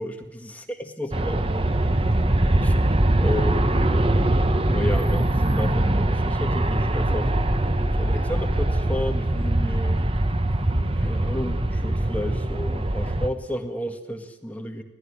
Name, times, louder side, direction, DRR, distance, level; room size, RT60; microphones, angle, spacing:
voice 1, 0.0-1.7 2.6-2.7 3.2-3.8 4.7-7.3 8.0-10.0 11.0-14.8, left 1 dB, 10° left, 4 dB, 1.9 m, -32 dB
Aircraft, 1.1-13.3, right 1 dB, 30° right, 1.1 m, -22 dB
25.0 x 18.0 x 10.0 m, 0.90 s
head